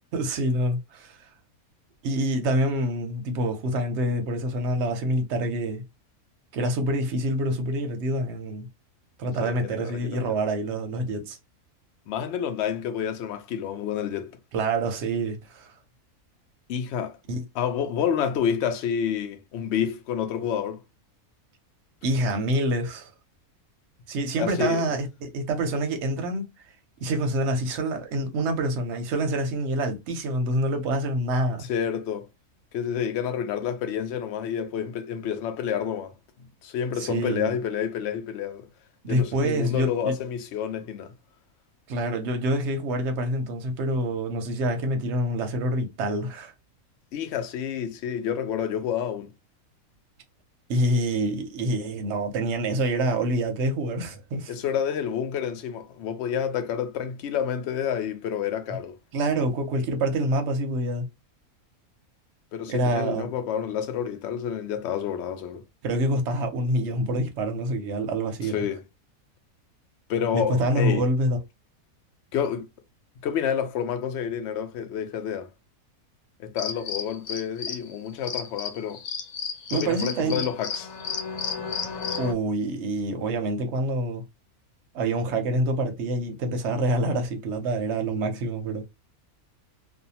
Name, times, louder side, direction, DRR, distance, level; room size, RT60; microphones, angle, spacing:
voice 1, 0.1-1.2 2.0-5.8 6.5-8.7 9.2-11.4 14.5-15.7 17.3-17.4 22.0-23.1 24.1-26.4 27.0-31.7 37.0-37.6 39.0-40.2 41.9-46.5 50.7-54.5 59.1-61.1 62.7-63.3 65.8-68.6 70.3-71.4 79.7-80.5 82.2-84.2 84.9-88.8, right 1 dB, 60° right, 0.9 m, -26 dB
voice 2, 9.4-10.4 12.1-14.3 16.7-17.2 17.5-20.8 24.4-24.8 31.6-32.3 32.7-36.1 36.6-38.7 39.1-41.1 47.1-49.3 54.5-59.0 62.5-65.6 68.4-68.8 70.1-71.0 72.3-72.7 73.2-75.5 76.4-79.0 79.7-80.9, left 8 dB, 65° left, 0.7 m, -29 dB
sound 1, 76.6-77.9 78.2-82.3, left 6 dB, 85° left, 1.1 m, -32 dB
2.6 x 2.2 x 2.7 m
omnidirectional pair, 1.6 m